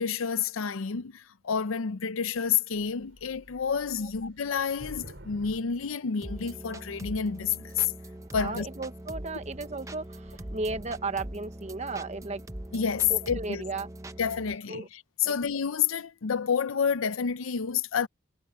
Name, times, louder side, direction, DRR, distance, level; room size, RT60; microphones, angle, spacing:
voice 1, 0.0-7.9 8.3-8.7 12.7-13.6 14.2-18.1, left 7 dB, 85° left, 0.6 m, -29 dB
Thunder / Rain, 2.3-2.5 2.7-6.9 7.6-8.0 8.5-8.6 8.9-12.6, equal, 65° right, 4.0 m, -50 dB
sound 1, 6.2-14.6, right 1 dB, 15° right, 0.8 m, -42 dB
voice 2, 8.4-12.4 13.1-13.9 14.7-14.9 15.2-15.3, right 3 dB, 35° right, 1.1 m, -35 dB
head